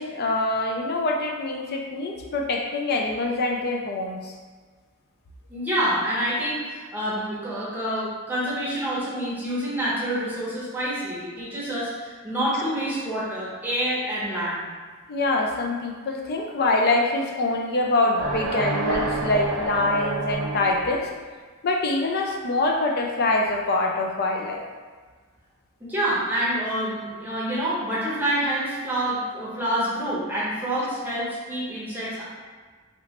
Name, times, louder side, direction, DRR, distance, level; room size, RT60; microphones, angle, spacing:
voice 1, 0.0-4.3 15.1-21.1 21.6-24.6, left 2 dB, 45° left, 1 dB, 0.4 m, -24 dB
voice 2, 5.5-14.6 25.8-32.2, right 1 dB, 10° right, -8 dB, 0.8 m, -27 dB
sound 1, 18.2-21.0, right 2 dB, 80° right, 0.5 m, -28 dB
3.1 x 2.9 x 2.9 m, 1.5 s
head